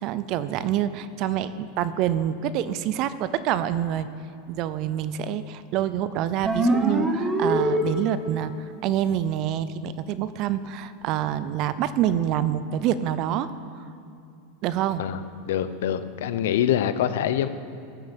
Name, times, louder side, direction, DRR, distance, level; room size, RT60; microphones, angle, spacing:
voice 1, 0.0-4.1 4.5-8.5 8.8-13.5 14.6-15.0, right 10 dB, 30° right, 14 dB, 0.4 m, -26 dB
sound 1, 6.4-8.4, right 1 dB, 5° right, 0.8 m, -24 dB
voice 2, 15.5-17.5, left 10 dB, 65° left, 12 dB, 0.7 m, -24 dB
14.0 x 7.8 x 7.3 m, 2.5 s
supercardioid pair, 180°, 0 cm